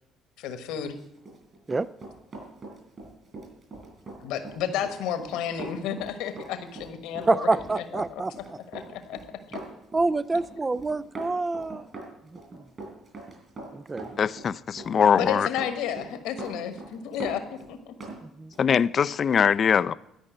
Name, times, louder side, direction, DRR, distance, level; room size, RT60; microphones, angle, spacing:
voice 1, 0.4-1.0 4.2-7.5 7.7-9.2 15.1-18.1, left 9 dB, 75° left, 1.3 m, -32 dB
Run, 1.1-18.2 18.5-18.7, right 2 dB, 45° right, 5.4 m, -42 dB
voice 2, 7.3-8.3 9.9-11.8 13.7-14.1 18.4-18.5, right 3 dB, 25° right, 0.4 m, -26 dB
voice 3, 14.2-15.5 18.6-19.9, left 7 dB, 50° left, 0.4 m, -22 dB
12.5 x 5.4 x 9.0 m
hypercardioid pair, 60°, 0 cm